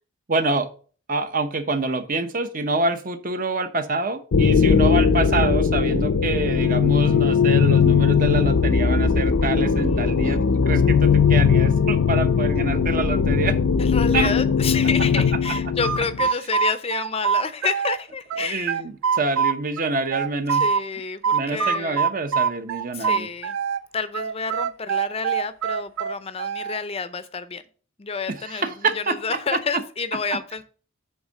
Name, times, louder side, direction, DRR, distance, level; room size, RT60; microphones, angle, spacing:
voice 1, 0.3-0.7 1.1-13.6 14.1-14.3 18.4-20.6 21.3-23.3 28.3-29.8, right 3 dB, 40° right, 9 dB, 0.8 m, -26 dB
sound 1, 4.3-16.3, left 6 dB, 75° left, 0.6 m, -19 dB
voice 2, 9.8-10.4 13.8-18.8 20.5-22.0 22.9-23.6 23.9-27.6 28.0-30.6, left 5 dB, 30° left, 13 dB, 0.5 m, -29 dB
sound 2, 15.4-18.0 18.3-20.8 21.2-23.8 24.1-26.8, right 6 dB, 75° right, 0.4 m, -24 dB
8.1 x 3.6 x 6.5 m, 0.40 s
head